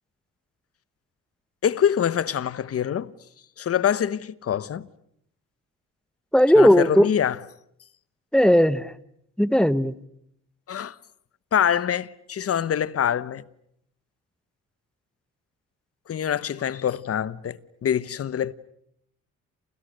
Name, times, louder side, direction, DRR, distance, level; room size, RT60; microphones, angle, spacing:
voice 1, 1.6-3.1 3.6-4.9 6.6-7.4 10.7-11.0 11.5-13.4 16.1-18.5, left 9 dB, 50° left, 1.1 m, -25 dB
voice 2, 6.3-7.1 8.3-8.9 9.4-9.9, equal, 5° left, 1.1 m, -17 dB
29.0 x 29.0 x 6.7 m
cardioid pair, 90°, 30 cm